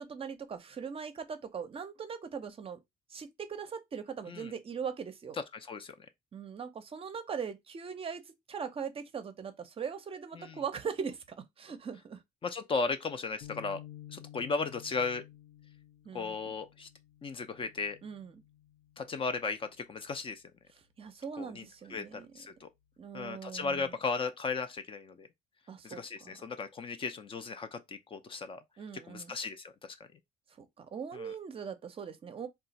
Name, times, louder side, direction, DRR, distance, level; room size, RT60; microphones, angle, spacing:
voice 1, 0.0-2.8 3.1-5.4 6.3-12.2 16.0-16.5 18.0-18.4 21.0-22.3 23.0-23.9 25.7-26.4 28.8-29.4 30.6-32.5, right 6 dB, 35° right, 0.6 m, -40 dB
voice 2, 5.5-5.9 10.3-10.6 12.4-13.8 14.1-15.2 16.1-16.9 17.2-18.0 19.0-20.4 21.4-22.7 23.1-25.3 25.8-28.6 29.1-30.0 31.1-31.3, left 4 dB, 30° left, 0.4 m, -36 dB
sound 1, 13.4-19.8, left 13 dB, 85° left, 0.7 m, -53 dB
2.4 x 2.3 x 4.0 m
cardioid pair, 110°, 17 cm